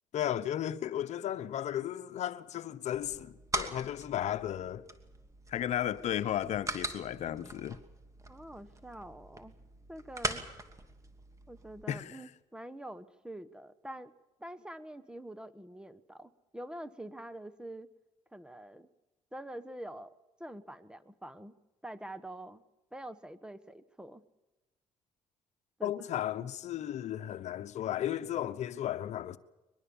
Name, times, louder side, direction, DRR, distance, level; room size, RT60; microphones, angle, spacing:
voice 1, 0.1-4.8 5.5-7.8 11.9-12.2 25.8-29.4, left 11 dB, 70° left, 1.0 m, -34 dB
sound 1, 2.9-11.8, right 2 dB, 25° right, 2.7 m, -42 dB
voice 2, 8.3-9.5 9.9-10.4 11.5-14.1 14.4-17.9 18.3-18.9 19.3-20.1 20.4-21.5 21.8-22.6 22.9-24.2 25.8-25.9 26.2-26.5, right 1 dB, 5° right, 1.3 m, -46 dB
23.0 x 22.0 x 7.2 m
cardioid pair, 80°, 12 cm